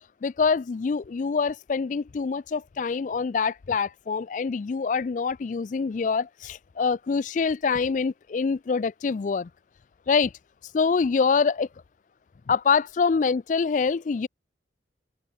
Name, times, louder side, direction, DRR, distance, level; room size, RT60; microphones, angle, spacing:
voice 1, 0.2-9.5 10.1-10.3 10.7-11.7 12.5-14.3, left 5 dB, 45° left, 0.3 m, -25 dB
open air
head